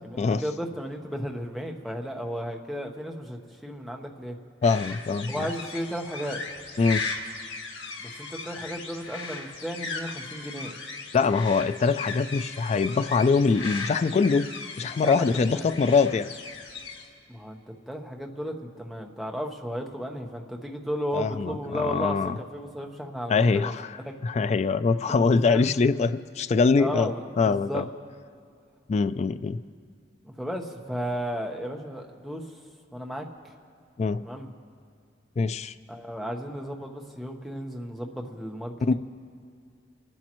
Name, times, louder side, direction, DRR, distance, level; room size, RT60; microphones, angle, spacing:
voice 1, 0.4-4.4 5.3-6.4 8.0-10.8 15.0-15.7 17.3-17.6 17.9-24.1 25.1-25.7 26.8-27.8 30.2-32.4 32.9-33.3 34.2-34.5 35.9-38.9, equal, ahead, 1 dB, 1.0 m, -34 dB
sound 1, 4.6-17.1, left 4 dB, 90° left, 1.7 m, -37 dB
voice 2, 4.6-5.4 6.8-7.0 11.1-14.5 14.8-16.3 21.1-22.4 23.3-23.9 24.2-27.1 27.4-27.8 28.9-29.6 34.0-34.2 35.4-35.7 38.9-39.0, left 4 dB, 35° left, 12 dB, 0.3 m, -23 dB
29.5 x 11.5 x 3.0 m, 2.4 s
head